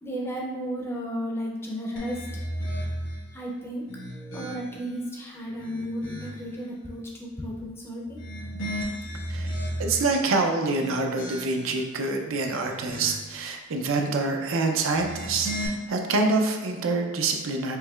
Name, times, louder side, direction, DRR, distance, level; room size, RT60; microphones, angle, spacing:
voice 1, 0.0-2.2 3.3-3.8 4.3-8.2 8.5-8.7 9.1-9.4, equal, 10° left, -2 dB, 0.5 m, -34 dB
sound 1, 2.0-3.3 3.8-4.9 5.4-6.5 8.0-10.2 10.7-11.8 12.3-13.4 14.9-15.7, equal, 65° left, 1.2 m, -35 dB
voice 2, 9.8-17.8, right 3 dB, 70° right, 3 dB, 0.5 m, -26 dB
4.6 x 3.1 x 2.3 m, 1.3 s
head